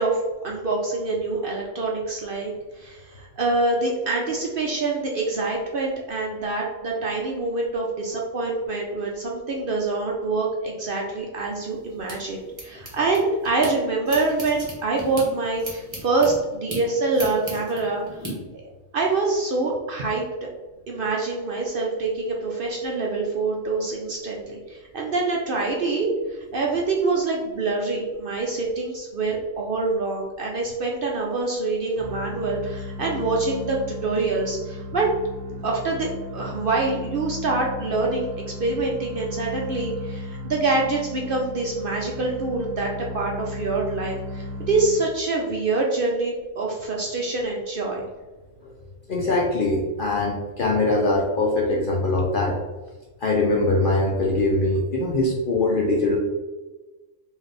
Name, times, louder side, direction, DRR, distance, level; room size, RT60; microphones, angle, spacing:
voice 1, 0.0-18.2 18.9-20.5 20.9-35.1 35.6-38.3 38.6-48.1, right 3 dB, 55° right, -1 dB, 0.6 m, -25 dB
sound 1, 11.4-13.7 14.1-18.3, right 1 dB, 25° right, 1.0 m, -37 dB
sound 2, 32.0-45.4, left 2 dB, 85° right, 1.0 m, -36 dB
voice 2, 49.1-52.6 53.2-56.2, left 2 dB, 55° left, -1 dB, 0.6 m, -22 dB
4.0 x 2.7 x 3.3 m, 1.2 s
omnidirectional pair, 1.4 m